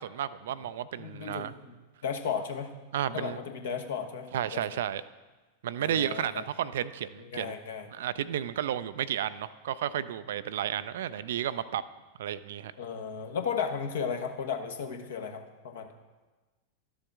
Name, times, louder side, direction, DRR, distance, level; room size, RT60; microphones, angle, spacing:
voice 1, 0.0-1.5 2.9-3.4 4.3-5.0 5.6-7.5 7.9-11.8 12.2-12.7, right 10 dB, 60° right, 15 dB, 0.3 m, -32 dB
voice 2, 1.0-1.8 2.0-2.7 3.1-4.8 5.8-6.4 7.2-7.9 12.8-15.9, left 6 dB, 60° left, 5 dB, 1.0 m, -35 dB
12.5 x 7.0 x 3.6 m, 1.2 s
figure-of-eight pair, 90°, 0 cm